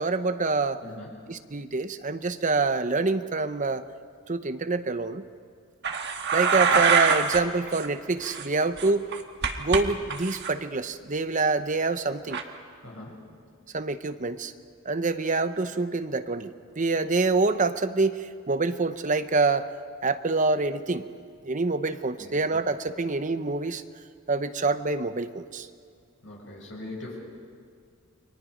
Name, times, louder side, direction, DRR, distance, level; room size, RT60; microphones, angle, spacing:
voice 1, 0.0-0.8 1.3-3.8 4.3-5.2 6.3-9.1 9.6-12.4 13.7-14.5 14.8-19.7 20.0-21.1 21.4-23.8 24.3-25.7, right 3 dB, 35° right, 11 dB, 0.8 m, -26 dB
voice 2, 0.8-1.3 12.8-13.2 22.2-22.3 26.2-27.2, left 2 dB, 65° left, -3 dB, 7.4 m, -41 dB
sound 1, 5.8-7.4 7.7-7.9 8.2-9.8 10.1-10.5 12.3-12.4, right 5 dB, 55° right, 1.4 m, -24 dB
29.5 x 22.5 x 5.2 m, 2.2 s
head